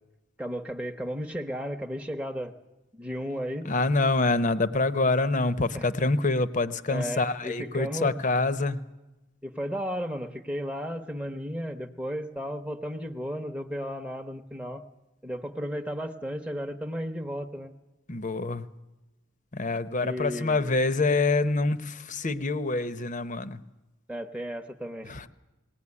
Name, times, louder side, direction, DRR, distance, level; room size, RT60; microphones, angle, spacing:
voice 1, 0.4-2.5 2.9-3.7 5.7-5.9 6.9-8.2 9.4-14.8 15.2-17.7 20.0-20.8 24.1-25.2, equal, 5° right, 3 dB, 0.9 m, -34 dB
voice 2, 3.7-8.8 18.1-18.6 19.5-23.6, left 3 dB, 40° left, 14 dB, 0.8 m, -26 dB
20.5 x 18.0 x 9.7 m, 1.1 s
head